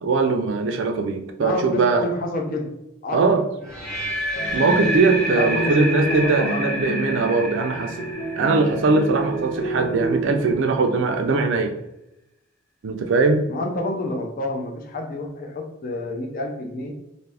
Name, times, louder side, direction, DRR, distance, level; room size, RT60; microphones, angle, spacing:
voice 1, 0.0-2.1 3.1-3.5 4.5-11.7 12.8-13.5, right 3 dB, 65° right, 5 dB, 0.4 m, -21 dB
voice 2, 1.4-2.8 3.0-3.6 5.4-6.9 13.5-16.9, left 1 dB, 45° left, 2 dB, 0.5 m, -29 dB
sound 1, 3.6-9.7, equal, 5° left, 1.0 m, -29 dB
sound 2, 4.3-10.5, right 2 dB, 85° left, 0.9 m, -29 dB
2.6 x 2.5 x 3.3 m, 0.89 s
head